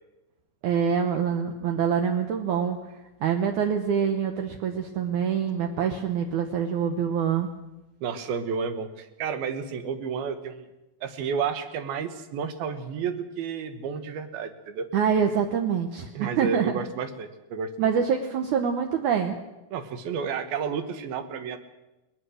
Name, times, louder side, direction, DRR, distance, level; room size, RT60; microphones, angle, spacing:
voice 1, 0.6-2.8 3.2-7.5 14.9-16.7 17.8-19.4, right 7 dB, 70° right, 4 dB, 2.2 m, -25 dB
voice 2, 8.0-10.6 11.0-14.9 16.1-17.9 19.7-21.6, right 6 dB, 85° right, 9 dB, 3.2 m, -31 dB
21.5 x 19.5 x 6.4 m, 1.0 s
omnidirectional pair, 4.2 m